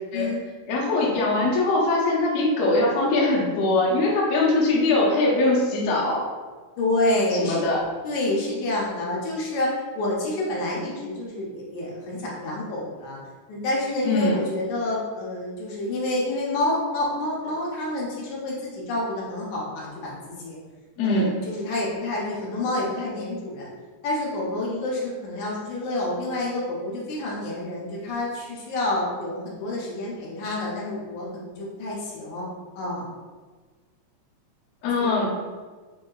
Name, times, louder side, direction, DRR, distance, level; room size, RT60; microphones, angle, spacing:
voice 1, 0.7-6.2 7.3-7.8 14.0-14.4 21.0-21.3 34.8-35.3, left 2 dB, 90° left, -5 dB, 1.4 m, -22 dB
voice 2, 6.8-7.6 8.0-13.2 13.5-20.6 21.0-23.7 24.0-32.5 32.8-33.1 35.0-35.1, left 2 dB, 75° left, -4 dB, 1.9 m, -28 dB
5.3 x 2.7 x 2.3 m, 1.4 s
omnidirectional pair, 4.1 m